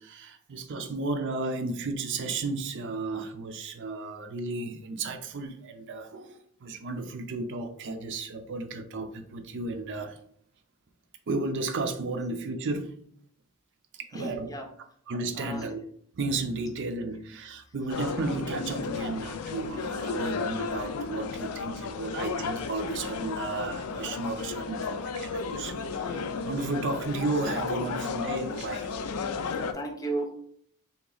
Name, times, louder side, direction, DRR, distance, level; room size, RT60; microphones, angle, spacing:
voice 1, 0.0-10.2 11.3-12.9 14.0-14.5 15.1-15.8 16.1-28.9, right 3 dB, 55° right, 6 dB, 0.5 m, -33 dB
voice 2, 14.1-14.7 15.4-15.6 29.5-30.3, right 2 dB, 15° left, 3 dB, 0.6 m, -34 dB
sound 1, 17.9-29.7, left 5 dB, 85° left, 0.4 m, -33 dB
3.8 x 2.9 x 3.8 m, 0.64 s
head